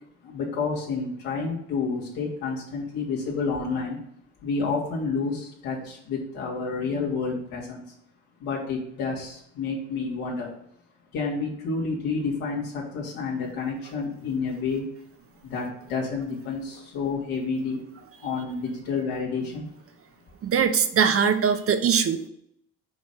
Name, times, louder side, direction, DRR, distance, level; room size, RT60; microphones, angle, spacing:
voice 1, 0.2-4.0 4.4-7.8 8.4-10.5 11.1-14.8 15.4-17.8 18.2-19.7, left 4 dB, 70° left, -3 dB, 2.7 m, -29 dB
voice 2, 20.4-22.3, right 7 dB, 40° right, 9 dB, 0.8 m, -21 dB
5.8 x 4.4 x 5.4 m, 0.69 s
hypercardioid pair, 65°, 37 cm